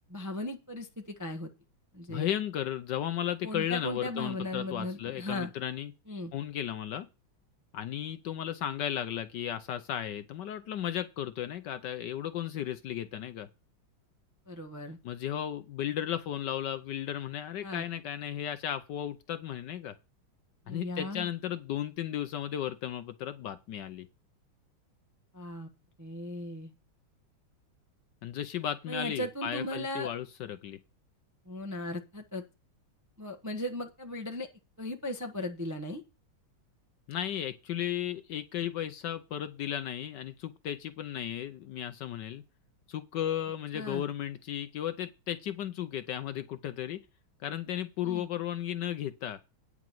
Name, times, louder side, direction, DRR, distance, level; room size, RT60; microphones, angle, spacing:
voice 1, 0.1-1.5 1.9-2.3 3.4-5.5 6.1-6.3 14.5-15.0 17.6-17.8 20.7-21.3 25.3-25.7 26.0-26.7 28.9-30.1 31.5-32.4 33.2-34.5 34.8-36.0 43.7-44.0 48.0-48.3, left 1 dB, 20° right, 0.5 m, -37 dB
voice 2, 2.1-5.9 6.3-7.1 7.7-13.5 15.0-19.9 20.7-24.1 28.2-30.8 37.1-42.4 42.9-47.0 47.4-49.4, left 10 dB, 70° left, 1.1 m, -35 dB
9.5 x 4.9 x 7.6 m
omnidirectional pair, 2.3 m